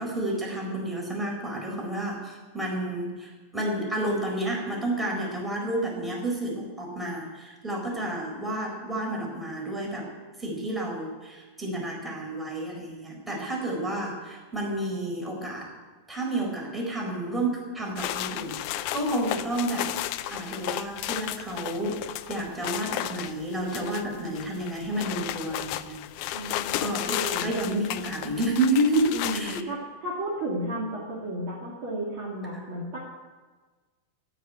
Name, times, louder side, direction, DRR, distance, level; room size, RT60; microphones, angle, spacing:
voice 1, 0.0-10.1 10.4-15.7 16.1-20.0 20.3-26.0 26.8-29.6 32.5-32.6, right 1 dB, ahead, -2 dB, 4.0 m, -30 dB
sound 1, 18.0-29.6, left 13 dB, 80° left, 1.9 m, -34 dB
voice 2, 26.3-27.5 29.1-33.0, right 1 dB, 40° right, -4 dB, 2.8 m, -33 dB
14.0 x 9.3 x 9.4 m, 1.3 s
omnidirectional pair, 3.9 m